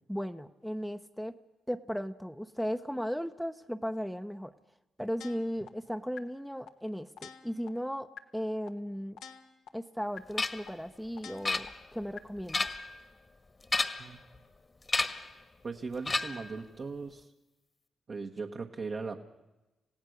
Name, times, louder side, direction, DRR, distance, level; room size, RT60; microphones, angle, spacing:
voice 1, 0.1-1.3 1.7-4.5 5.0-9.2 9.7-12.7, equal, ahead, 7 dB, 0.9 m, -36 dB
sound 1, 5.2-5.7 6.2-6.3 6.7-6.8 7.2-7.7 8.2-8.3 8.7-8.8 9.2-9.7 10.2-10.3 10.7-10.8 11.2-11.7 12.2-12.3, left 7 dB, 80° left, 1.3 m, -47 dB
sound 2, 10.4-10.7 11.4-12.0 12.4-13.0 13.6-14.2 14.9-15.3 16.0-16.5, left 3 dB, 35° left, 1.5 m, -31 dB
voice 2, 15.6-17.3 18.1-19.2, right 4 dB, 50° right, 1 dB, 1.4 m, -38 dB
27.5 x 16.5 x 6.5 m, 1.0 s
supercardioid pair, 50°, 0 cm